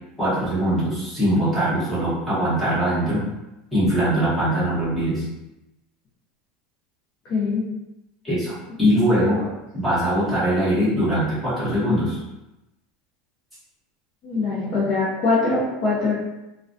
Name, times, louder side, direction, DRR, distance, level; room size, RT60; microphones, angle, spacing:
voice 1, 0.2-3.3 3.7-5.3 8.2-9.4 9.7-12.2, equal, ahead, -11 dB, 0.9 m, -22 dB
voice 2, 7.3-7.6 14.2-16.1, left 3 dB, 35° left, -6 dB, 0.5 m, -22 dB
2.3 x 2.1 x 2.5 m, 0.95 s
supercardioid pair, 170°, 0 cm